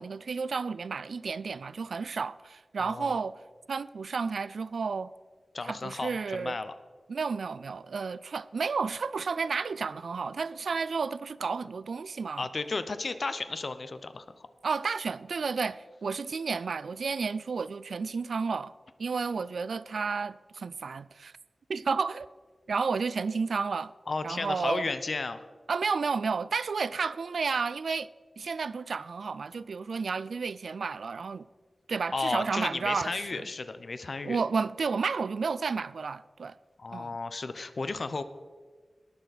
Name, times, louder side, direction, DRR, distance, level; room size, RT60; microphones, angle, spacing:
voice 1, 0.0-3.4 3.7-5.1 5.6-6.6 7.1-12.5 14.6-18.7 19.0-21.3 21.7-22.3 22.7-23.9 24.2-24.9 25.7-28.1 28.4-31.5 31.9-33.5 34.2-36.6 36.9-37.2, right 5 dB, 90° right, 0.3 m, -31 dB
voice 2, 2.8-3.2 5.5-6.7 12.4-14.5 24.1-25.4 32.1-34.4 36.8-38.2, left 3 dB, 55° left, 0.6 m, -33 dB
19.0 x 6.8 x 4.1 m
wide cardioid pair, 105°, 0 cm